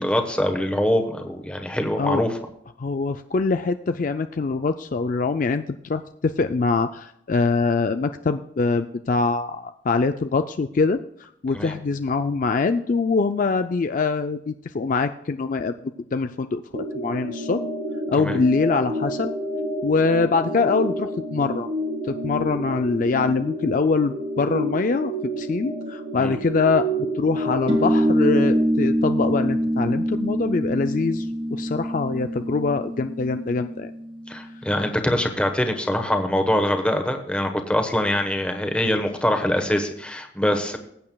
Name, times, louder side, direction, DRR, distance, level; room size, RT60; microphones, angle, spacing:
voice 1, 0.0-2.4 11.5-11.7 18.2-18.4 26.2-26.4 34.3-40.8, left 1 dB, 5° left, 4 dB, 1.1 m, -23 dB
voice 2, 2.8-17.6 18.1-19.3 19.8-21.7 22.1-33.9 38.9-39.0, left 4 dB, 45° left, 8 dB, 0.4 m, -24 dB
sound 1, 16.7-28.6, right 1 dB, 90° right, 1.5 m, -29 dB
sound 2, 27.7-34.6, equal, 25° right, 1.5 m, -24 dB
20.0 x 8.7 x 2.3 m, 0.76 s
head